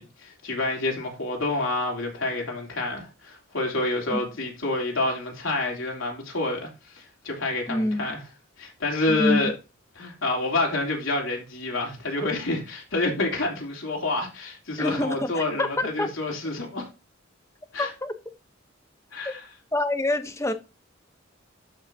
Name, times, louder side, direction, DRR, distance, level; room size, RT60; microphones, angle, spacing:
voice 1, 0.0-8.2 8.6-9.5 10.0-16.9 17.7-17.9 19.1-19.4, left 2 dB, 80° left, 3.1 m, -28 dB
voice 2, 7.7-8.1 9.1-9.4 14.8-16.1 17.8-18.1 19.2-19.3 19.7-20.5, left 1 dB, 15° left, 0.8 m, -26 dB
12.5 x 5.7 x 2.7 m
head